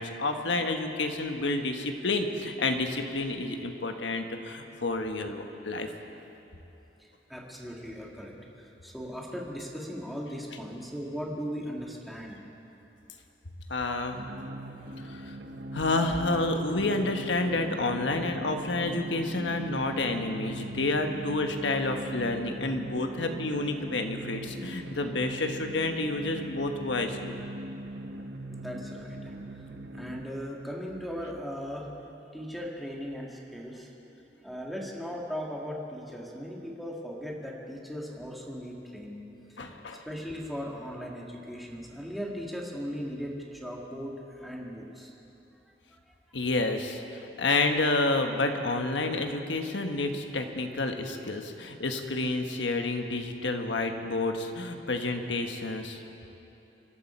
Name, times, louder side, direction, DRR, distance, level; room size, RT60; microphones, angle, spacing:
voice 1, 0.0-5.9 13.7-14.2 15.0-15.4 15.7-27.3 39.6-40.0 46.3-56.0, left 2 dB, 85° left, 5 dB, 1.3 m, -29 dB
voice 2, 7.0-12.4 28.5-29.6 29.9-31.9 32.2-39.6 40.1-45.1 46.1-46.2, equal, ahead, -3 dB, 2.0 m, -38 dB
sound 1, 14.1-30.3, right 1 dB, 70° right, 1.0 m, -40 dB
25.5 x 12.0 x 4.5 m, 2.9 s
head